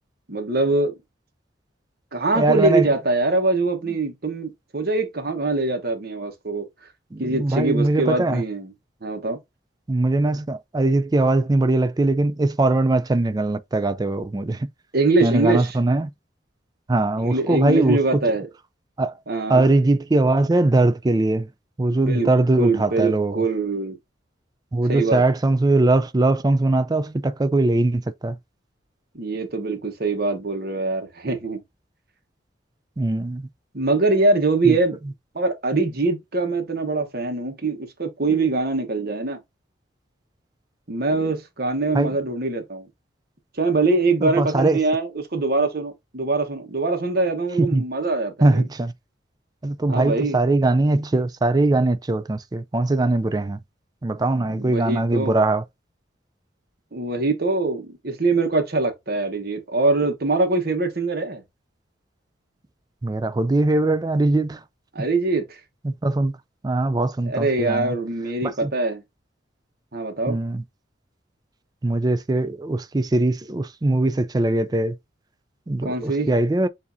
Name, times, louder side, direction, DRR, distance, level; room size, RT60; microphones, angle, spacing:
voice 1, 0.3-0.9 2.1-6.7 7.2-8.7 9.0-9.4 14.9-15.8 17.2-18.5 19.3-19.7 21.9-24.0 24.9-25.2 29.1-31.6 33.7-35.0 35.3-39.4 40.9-42.9 43.6-48.6 49.9-50.4 54.3-55.4 56.9-61.4 64.9-65.6 67.3-69.0 69.9-70.4 75.8-76.3, right 3 dB, 50° right, 1.2 m, -23 dB
voice 2, 2.3-2.9 7.1-8.4 9.9-14.7 15.2-16.1 16.9-18.2 19.0-19.1 19.5-21.5 21.8-23.4 24.7-28.4 33.0-33.5 34.6-34.8 41.9-42.1 44.2-44.8 47.6-47.8 48.4-48.9 49.6-53.6 54.0-55.6 63.0-64.6 65.8-66.3 66.6-67.9 68.4-68.7 70.3-70.6 71.8-75.0 75.7-76.7, right 2 dB, 20° right, 0.4 m, -21 dB
7.1 x 2.8 x 2.6 m
head